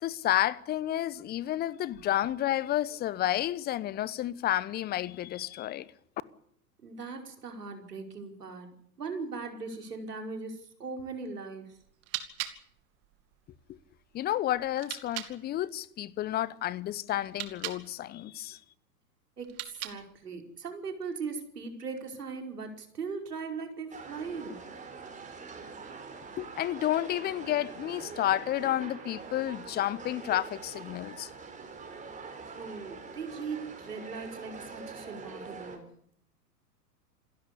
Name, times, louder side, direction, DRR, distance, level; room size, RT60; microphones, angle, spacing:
voice 1, 0.0-5.9 13.7-13.8 14.1-18.6 26.4-31.3, left 13 dB, 20° left, 0.9 m, -31 dB
voice 2, 6.8-11.8 19.4-24.6 32.6-35.9, right 4 dB, 75° right, 5.3 m, -39 dB
sound 1, 11.8-15.4 17.2-17.9 19.4-20.2, right 13 dB, 30° right, 2.5 m, -41 dB
sound 2, 23.9-35.8, right 4 dB, 15° right, 4.8 m, -44 dB
27.5 x 13.0 x 9.9 m
figure-of-eight pair, 105°, 48 cm